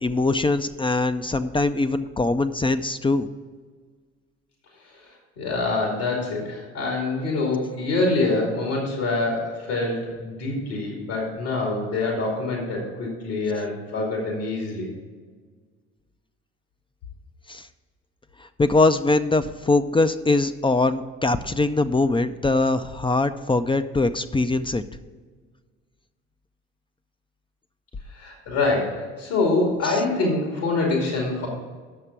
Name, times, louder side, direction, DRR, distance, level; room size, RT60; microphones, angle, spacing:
voice 1, 0.0-3.3 17.5-17.6 18.6-24.8 29.8-30.0, left 2 dB, 15° left, 10 dB, 0.5 m, -22 dB
voice 2, 5.0-14.9 28.1-31.5, left 3 dB, 75° left, -1 dB, 2.6 m, -25 dB
10.0 x 6.5 x 5.8 m, 1.5 s
hypercardioid pair, 55°, 34 cm